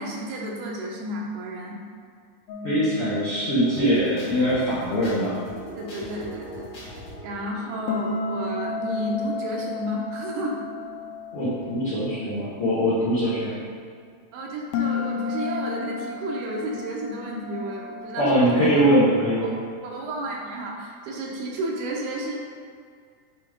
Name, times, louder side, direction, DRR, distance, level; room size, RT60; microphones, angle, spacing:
voice 1, 0.0-1.8 5.8-6.7 7.2-10.6 14.3-18.9 19.4-19.5 19.8-22.3, right 1 dB, 75° right, -2 dB, 2.7 m, -32 dB
sound 1, 2.5-5.5 7.9-12.4 14.7-19.3, left 4 dB, 85° left, 2.8 m, -33 dB
voice 2, 2.6-5.3 11.3-13.6 18.1-19.6, equal, 70° left, -10 dB, 1.3 m, -22 dB
sound 2, 3.6-9.1, equal, 45° left, 1.3 m, -41 dB
9.1 x 3.1 x 5.0 m, 2.1 s
omnidirectional pair, 4.7 m